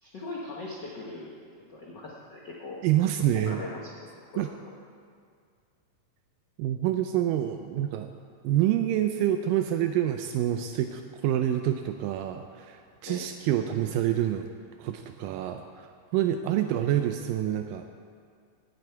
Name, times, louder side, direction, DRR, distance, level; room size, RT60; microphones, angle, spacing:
voice 1, 0.0-1.3 1.7-2.8 3.5-3.9 4.3-4.5 13.1-13.3, left 2 dB, 75° left, -4 dB, 1.0 m, -39 dB
voice 2, 2.8-3.7 4.4-4.5 6.6-8.1 8.4-14.5 14.8-17.9, right 11 dB, 85° right, 7 dB, 2.2 m, -27 dB
16.5 x 9.4 x 4.6 m, 2.2 s
omnidirectional pair, 3.9 m